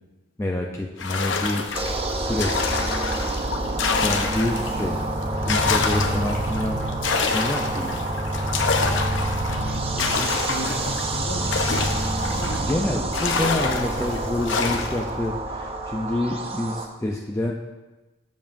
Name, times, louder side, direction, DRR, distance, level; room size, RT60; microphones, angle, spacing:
voice 1, 0.4-1.7 2.1-2.7 4.0-4.9 5.4-6.8 7.3-8.0 12.7-17.5, left 1 dB, 15° left, -1 dB, 0.5 m, -27 dB
sound 1, 1.0-4.8 5.2-12.7 13.1-15.1, left 4 dB, 65° left, 0.7 m, -27 dB
sound 2, 1.7-16.9, right 2 dB, 30° right, 0.6 m, -27 dB
voice 2, 9.5-11.6 12.4-12.7, left 1 dB, 45° left, 1 dB, 1.2 m, -35 dB
12.5 x 7.2 x 2.6 m, 1.1 s
head